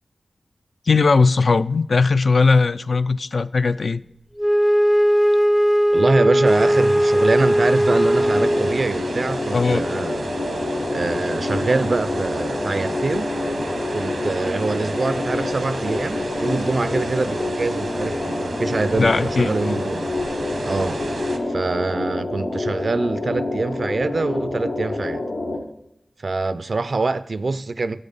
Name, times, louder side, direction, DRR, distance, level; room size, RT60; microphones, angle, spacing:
voice 1, 0.9-4.0 9.5-10.0 18.9-19.8, left 4 dB, 70° left, 0.3 m, -19 dB
Wind instrument woodwind instrument, 4.4-9.0, equal, 5° left, 0.4 m, -18 dB
voice 2, 5.9-10.3 10.9-13.3 13.9-20.1 20.6-21.2 21.5-25.3 26.2-28.0, right 3 dB, 65° right, 0.4 m, -24 dB
sound 1, 6.4-21.4, right 3 dB, 85° right, 1.0 m, -34 dB
sound 2, 8.2-25.6, left 2 dB, 85° left, 1.7 m, -27 dB
11.0 x 7.8 x 4.0 m
cardioid pair, 45°, 0 cm